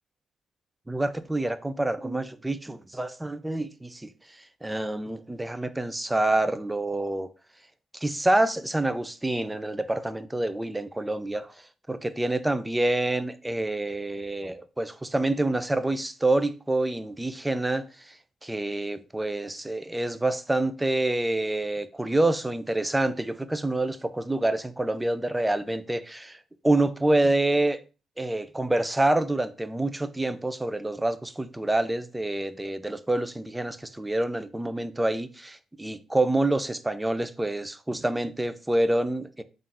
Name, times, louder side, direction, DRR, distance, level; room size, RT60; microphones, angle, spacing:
voice 1, 0.9-7.3 7.9-11.5 11.9-18.2 18.4-27.8 28.2-39.4, right 2 dB, 10° right, 0.4 m, -27 dB
3.8 x 2.5 x 4.1 m
cardioid pair, 90°, 0 cm